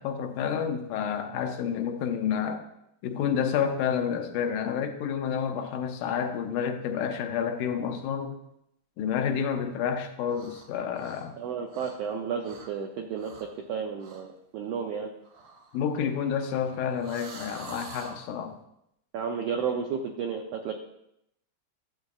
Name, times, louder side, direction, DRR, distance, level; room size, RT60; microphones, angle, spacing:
voice 1, 0.0-2.7 3.0-8.4 9.0-11.4 15.7-18.6, left 7 dB, 80° left, 6 dB, 2.1 m, -29 dB
sound 1, 10.3-10.7 10.9-12.1 12.4-12.7 13.1-13.6 14.0-14.3 15.2-18.2, right 3 dB, 65° right, 1.6 m, -47 dB
voice 2, 11.4-13.3 13.7-15.1 19.1-20.7, right 6 dB, 85° right, 2 dB, 1.4 m, -32 dB
11.5 x 7.6 x 2.4 m, 0.79 s
omnidirectional pair, 3.6 m